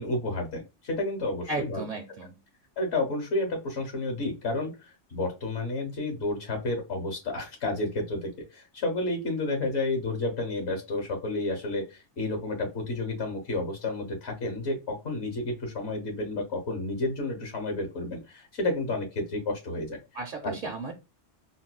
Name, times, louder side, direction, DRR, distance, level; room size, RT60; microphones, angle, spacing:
voice 1, 0.0-1.8 2.8-20.0 20.4-20.6, left 2 dB, 70° left, 3 dB, 1.3 m, -31 dB
voice 2, 1.5-2.4 20.1-20.9, right 3 dB, 55° right, 2 dB, 0.6 m, -34 dB
3.7 x 2.2 x 2.2 m, 0.26 s
omnidirectional pair, 1.2 m